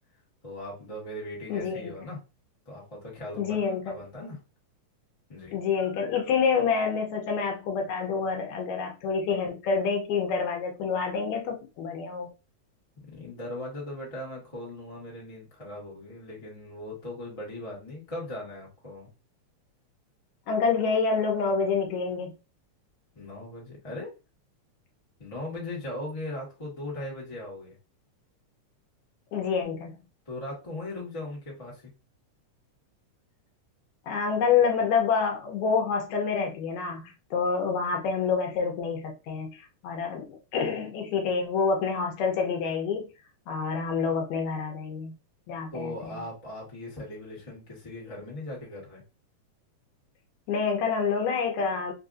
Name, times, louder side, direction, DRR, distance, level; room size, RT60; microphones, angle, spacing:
voice 1, 0.4-2.2 2.6-3.6 3.9-4.4 5.3-5.6 13.1-19.1 23.1-24.1 25.2-27.7 30.2-31.9 45.7-49.0, left 1 dB, 30° left, 0.6 m, -39 dB
voice 2, 1.5-1.9 3.4-4.0 5.5-12.3 20.5-22.3 29.3-29.9 34.1-43.1 43.5-45.1 45.5-46.2 50.5-51.9, left 5 dB, 75° left, 2.0 m, -27 dB
4.7 x 2.5 x 2.5 m
omnidirectional pair, 3.5 m